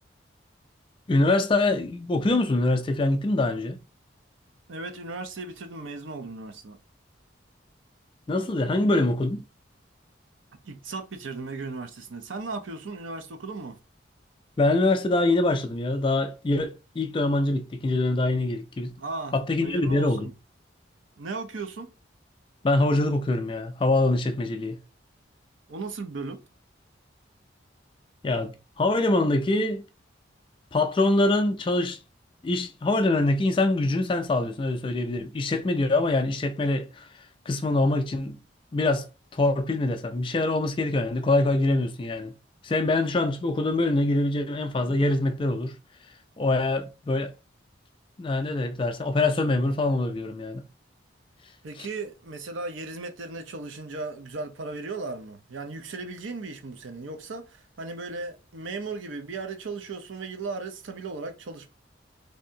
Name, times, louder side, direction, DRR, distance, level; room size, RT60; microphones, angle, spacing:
voice 1, 1.1-3.8 8.3-9.4 14.6-18.9 19.3-20.3 22.6-24.8 28.2-29.8 30.7-32.0 32.4-37.1 37.5-38.4 38.7-39.1 39.3-42.3 42.6-45.7 46.4-47.3 48.2-50.6 51.8-51.9, left 2 dB, 25° left, 0.3 m, -24 dB
voice 2, 4.7-6.8 10.6-13.8 19.0-19.3 19.6-20.3 21.2-21.9 25.7-26.4 51.6-61.7, right 3 dB, 90° right, 0.6 m, -36 dB
3.4 x 2.7 x 2.7 m
head